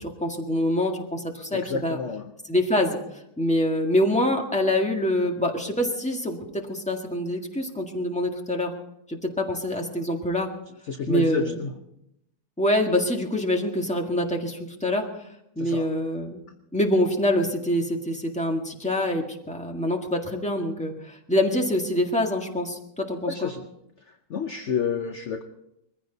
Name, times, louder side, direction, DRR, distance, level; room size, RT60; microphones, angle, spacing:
voice 1, 0.0-2.0 2.4-3.0 3.4-8.7 9.1-10.5 11.1-11.6 12.6-15.3 15.5-16.4 16.7-23.5, left 1 dB, 5° left, 1 dB, 1.7 m, -25 dB
voice 2, 1.5-2.2 10.9-11.7 15.6-15.8 23.3-23.6 24.3-25.4, left 6 dB, 55° left, 7 dB, 1.0 m, -29 dB
21.5 x 15.5 x 4.0 m, 0.83 s
omnidirectional pair, 1.8 m